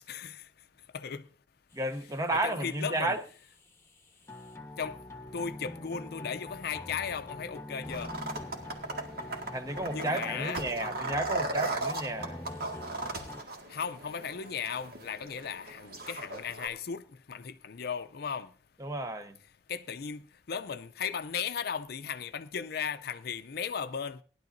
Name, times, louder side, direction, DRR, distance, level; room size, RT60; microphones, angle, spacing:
voice 1, 0.1-0.5 0.9-1.2 2.3-3.2 4.8-5.0 5.3-8.1 9.9-10.9 13.7-18.5 19.7-20.2 20.5-24.2, left 6 dB, 60° left, 0.5 m, -36 dB
sound 1, 1.7-13.4, left 2 dB, 15° left, 1.2 m, -44 dB
voice 2, 1.7-3.2 9.5-12.4 18.8-19.4, right 2 dB, 20° right, 0.8 m, -32 dB
sound 2, 7.9-16.7, right 2 dB, 60° right, 1.9 m, -38 dB
19.0 x 11.0 x 2.6 m
head